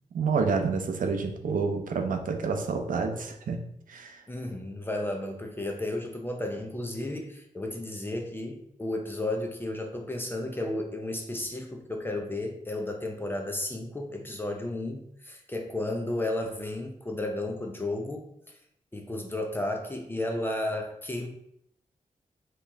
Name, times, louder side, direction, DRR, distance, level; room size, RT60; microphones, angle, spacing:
voice 1, 0.1-3.6 3.9-4.2, right 5 dB, 85° right, 5 dB, 0.6 m, -28 dB
voice 2, 4.3-18.3 18.9-21.3, left 1 dB, 15° left, 2 dB, 0.7 m, -33 dB
4.4 x 3.0 x 3.4 m, 0.71 s
wide cardioid pair, 110°, 13 cm